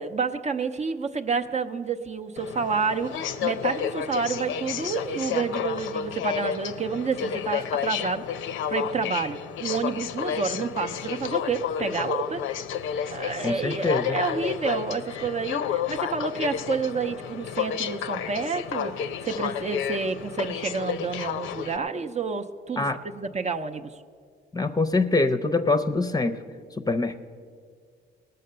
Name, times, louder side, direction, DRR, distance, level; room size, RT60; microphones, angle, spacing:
voice 1, 0.0-8.2 8.7-12.4 13.1-22.9 23.2-23.9, right 5 dB, 35° right, 6 dB, 0.6 m, -29 dB
Aircraft, 2.4-21.8, left 9 dB, 80° left, 0.6 m, -31 dB
voice 2, 13.4-14.2 22.8-23.0 24.5-26.4 26.8-27.2, left 3 dB, 20° left, 10 dB, 0.6 m, -24 dB
18.5 x 6.7 x 6.7 m, 2.1 s
cardioid pair, 90°, 20 cm